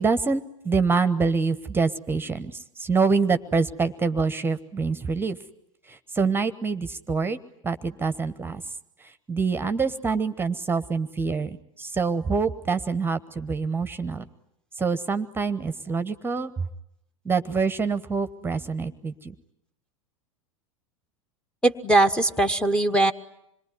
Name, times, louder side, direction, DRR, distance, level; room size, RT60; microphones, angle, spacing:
voice 1, 0.0-5.4 5.9-7.4 7.6-8.6 9.3-14.2 14.8-16.5 17.2-19.3, right 4 dB, 15° right, 13 dB, 1.1 m, -26 dB
voice 2, 21.6-23.1, right 2 dB, 5° left, 7 dB, 1.1 m, -20 dB
26.5 x 22.5 x 9.7 m, 0.80 s
figure-of-eight pair, 85°, 17 cm